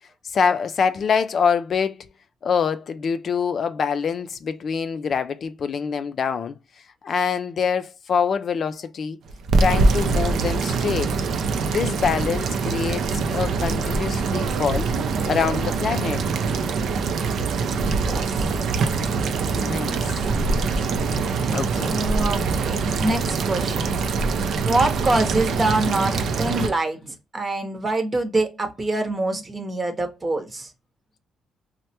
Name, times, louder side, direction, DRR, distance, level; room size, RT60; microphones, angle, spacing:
voice 1, 0.3-2.1 2.4-6.6 7.0-9.2 9.6-11.2 11.7-14.9 15.3-16.2 19.4-20.1 20.6-20.9 21.5-21.9, left 6 dB, 55° left, 0.3 m, -25 dB
sound 1, 9.3-26.7, right 4 dB, 70° right, 0.5 m, -23 dB
voice 2, 17.9-18.6 21.8-24.1 24.6-30.7, right 2 dB, 25° right, 0.8 m, -25 dB
3.2 x 2.1 x 2.7 m
cardioid pair, 90°, 0 cm